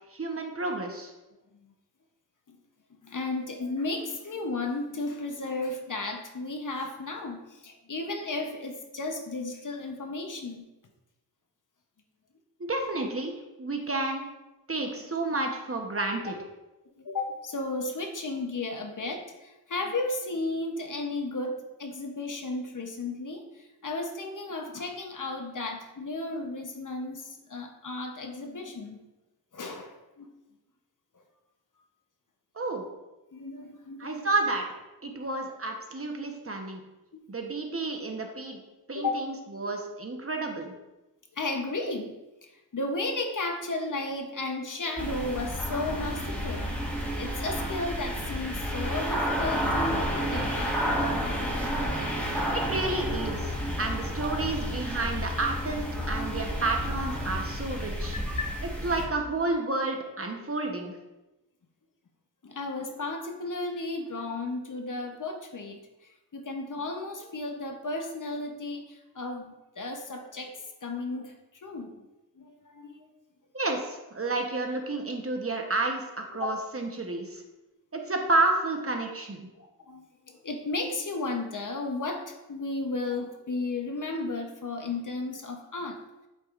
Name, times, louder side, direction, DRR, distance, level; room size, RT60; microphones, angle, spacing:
voice 1, 0.1-1.1 12.7-13.3 13.6-14.3 14.7-16.3 32.6-32.8 34.0-34.6 35.0-36.8 37.3-38.6 38.9-40.7 52.5-58.2 58.8-61.0 73.5-77.4 77.9-79.5, right 2 dB, 35° right, 2 dB, 1.0 m, -30 dB
voice 2, 3.0-10.7 14.8-15.1 17.0-29.0 29.5-30.3 31.1-31.2 33.3-34.3 35.0-35.2 37.1-37.2 38.9-39.3 41.3-42.1 42.4-46.8 47.2-50.6 58.3-58.6 62.4-65.8 66.3-71.3 71.6-72.0 72.4-73.1 76.4-76.5 79.6-86.0, left 2 dB, 55° left, 4 dB, 0.9 m, -34 dB
sound 1, 45.0-59.1, equal, 5° left, 1.4 m, -31 dB
8.1 x 4.8 x 2.5 m, 1.0 s
wide cardioid pair, 60°, 38 cm